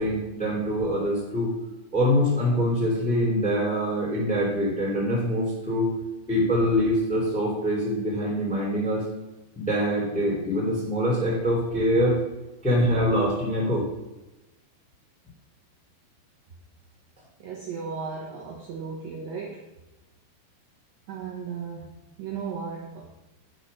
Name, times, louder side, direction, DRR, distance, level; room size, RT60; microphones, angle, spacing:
voice 1, 0.0-1.5 1.9-5.9 6.3-9.0 9.5-12.2 12.6-13.9, equal, ahead, -4 dB, 2.4 m, -24 dB
voice 2, 17.4-19.6 21.1-21.9 22.2-23.1, right 5 dB, 70° right, -4 dB, 2.4 m, -35 dB
10.5 x 4.8 x 5.7 m, 1.0 s
omnidirectional pair, 5.5 m